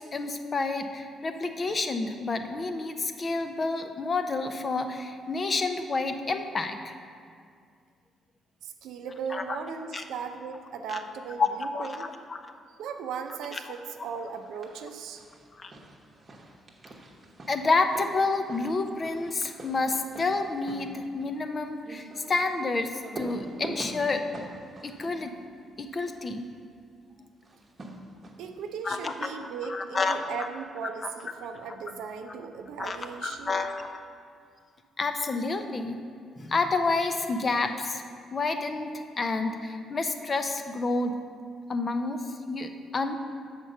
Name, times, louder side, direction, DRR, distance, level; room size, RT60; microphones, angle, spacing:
voice 1, 0.0-6.9 9.3-9.6 9.9-10.0 10.9-11.0 11.4-12.4 13.5-13.6 15.6-15.7 17.5-24.2 24.8-25.3 25.8-26.5 28.8-29.3 29.7-30.2 32.8-33.0 33.2-34.0 35.0-36.0 36.4-38.0 38.3-41.1 41.7-43.2, left 3 dB, 35° left, 7 dB, 0.6 m, -29 dB
voice 2, 8.6-12.1 12.8-15.2 28.4-33.5, right 6 dB, 85° right, 6 dB, 0.6 m, -37 dB
sound 1, 14.3-14.9 15.2-26.2 27.4-28.6, right 2 dB, 35° right, 1.0 m, -44 dB
6.5 x 4.4 x 6.4 m, 2.2 s
cardioid pair, 90°, 0 cm